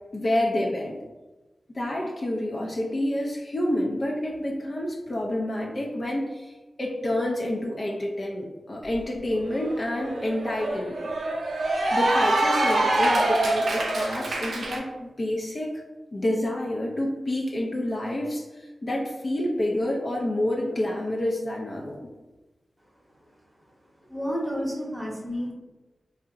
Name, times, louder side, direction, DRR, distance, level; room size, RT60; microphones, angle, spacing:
voice 1, 0.1-1.0 1.7-11.1 11.9-15.8 16.1-22.1, left 1 dB, 45° left, -2 dB, 0.5 m, -28 dB
Cheering / Applause, 8.9-9.0 9.4-14.8, right 1 dB, 80° right, 0.5 m, -25 dB
voice 2, 24.0-25.5, equal, 5° right, -2 dB, 0.9 m, -30 dB
2.5 x 2.1 x 3.7 m, 1.1 s
cardioid pair, 45°, 0 cm